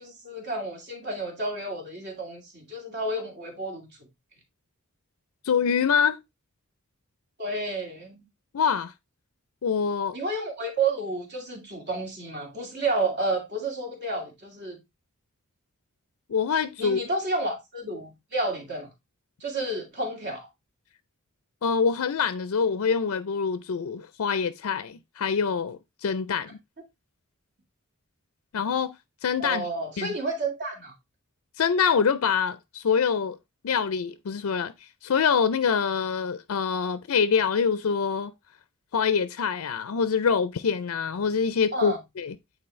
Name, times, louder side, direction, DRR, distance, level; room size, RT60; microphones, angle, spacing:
voice 1, 0.0-3.9 7.4-8.2 10.1-14.8 16.8-18.9 19.4-20.5 29.4-30.9 41.7-42.0, right 2 dB, 50° right, 2.2 m, -31 dB
voice 2, 5.4-6.2 8.5-8.9 9.6-10.2 16.3-17.0 21.6-26.6 28.5-28.9 29.2-29.7 30.0-30.1 31.6-33.4 33.6-34.7 35.0-38.3 38.9-42.4, left 6 dB, 70° left, 0.5 m, -25 dB
8.6 x 4.2 x 3.1 m
head